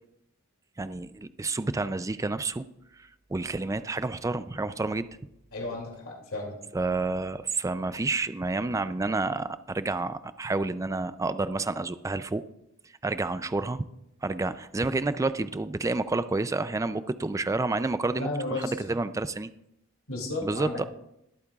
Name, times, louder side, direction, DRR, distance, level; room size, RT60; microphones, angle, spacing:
voice 1, 0.8-2.6 3.0-5.1 6.7-12.4 13.0-13.9 14.2-19.5 20.4-20.8, right 3 dB, 15° right, 13 dB, 0.3 m, -29 dB
voice 2, 5.5-6.6 18.1-18.7 20.1-20.8, left 2 dB, 75° left, 0 dB, 2.5 m, -33 dB
21.5 x 8.5 x 2.4 m, 0.80 s
head